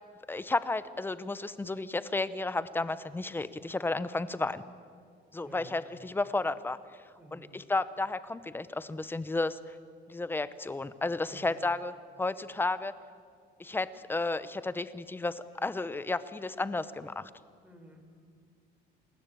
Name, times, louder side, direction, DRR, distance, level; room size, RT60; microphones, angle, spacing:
voice 1, 0.3-4.6 5.3-6.8 7.3-9.6 10.1-11.9 12.2-12.9 13.6-17.3, left 2 dB, 10° left, 15 dB, 0.8 m, -32 dB
voice 2, 7.2-7.5 11.3-11.5 17.6-18.0, right 1 dB, 10° right, 4 dB, 4.5 m, -52 dB
28.0 x 20.0 x 9.1 m, 2.1 s
cardioid pair, 155°, 20 cm